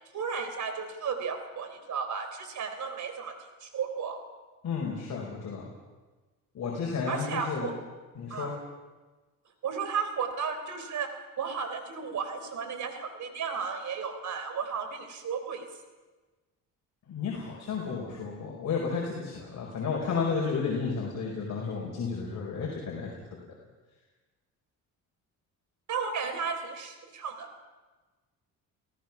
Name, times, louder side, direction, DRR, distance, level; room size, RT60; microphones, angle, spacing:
voice 1, 0.1-3.3 3.6-4.2 7.1-7.7 8.3-8.5 9.6-11.1 11.4-15.6 25.9-27.5, right 6 dB, 55° right, 7 dB, 3.6 m, -34 dB
voice 2, 4.6-5.7 6.5-7.7 8.2-8.5 17.1-23.4, left 5 dB, 55° left, -2 dB, 5.0 m, -32 dB
29.0 x 17.0 x 6.1 m, 1.3 s
cardioid pair, 100°, 34 cm